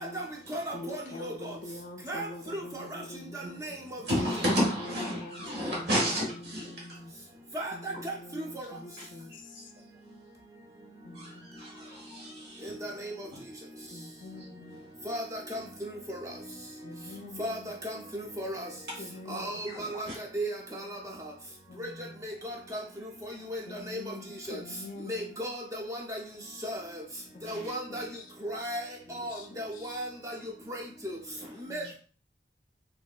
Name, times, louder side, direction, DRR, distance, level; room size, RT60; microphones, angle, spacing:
voice 1, 0.0-1.3 2.1-2.3 3.3-4.0 7.5-7.7 8.0-8.1 12.8-13.1 15.1-15.6 16.1-16.2 17.4-17.6 17.8-18.7 19.3-20.1 20.3-21.0 21.8-21.9 22.2-22.8 23.5-23.6 23.9-24.1 24.5-24.6 25.1-26.2 26.6-26.8 27.4-28.0 28.4-28.8 29.1-30.3 31.0-31.2 31.6-31.9, equal, 20° right, 0.5 m, -35 dB
voice 2, 0.7-3.6 4.1-7.1 7.7-9.7 11.0-11.7 13.9-14.8 16.8-17.7 19.0-19.6 21.7-22.3 23.7-25.3 27.3-28.3 29.1-30.1 31.7-31.9, left 2 dB, 50° left, 0.3 m, -45 dB
voice 3, 3.4-7.0 7.3-7.6 7.9-8.0 9.0-9.1 9.5-9.7 11.1-12.8 13.3-13.4 19.7-20.2 27.4-27.7 31.4-31.6 31.8-31.9, equal, 65° right, 1.4 m, -33 dB
3.0 x 2.7 x 2.3 m
head